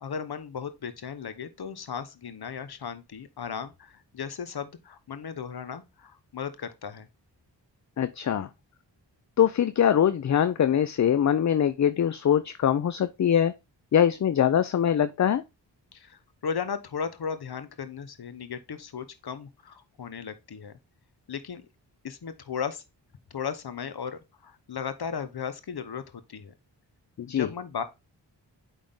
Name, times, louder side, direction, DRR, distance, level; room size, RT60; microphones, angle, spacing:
voice 1, 0.0-7.1 15.9-20.7 21.3-21.7 22.0-22.8 23.3-26.5 27.3-27.8, left 7 dB, 60° left, 1.0 m, -36 dB
voice 2, 8.0-8.5 9.4-13.5 13.9-15.4 27.2-27.5, left 9 dB, 40° left, 0.5 m, -23 dB
8.7 x 3.7 x 3.6 m
cardioid pair, 40°, 44 cm